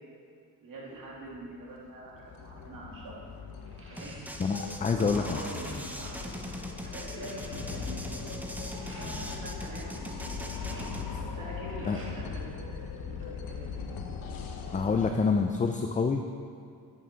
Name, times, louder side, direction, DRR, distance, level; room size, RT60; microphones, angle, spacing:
voice 1, 0.6-3.2 3.9-4.1 4.9-6.3 6.8-8.1 8.7-13.2 13.4-14.0, right 2 dB, 65° right, -4 dB, 2.8 m, -44 dB
sound 1, 1.2-15.1, left 5 dB, 70° left, 1.0 m, -40 dB
sound 2, 2.2-2.5 2.9-4.7 5.0-6.1 6.6-6.7 6.9-9.1 10.2-12.4 12.8-13.6, right 2 dB, 35° right, 2.0 m, -53 dB
sound 3, 4.0-11.1, equal, 5° right, 0.8 m, -41 dB
voice 2, 4.4-5.4 11.9-12.0 14.7-16.2, left 5 dB, 20° left, 5 dB, 0.5 m, -27 dB
9.3 x 8.8 x 4.4 m, 2.3 s
cardioid pair, 95°, 35 cm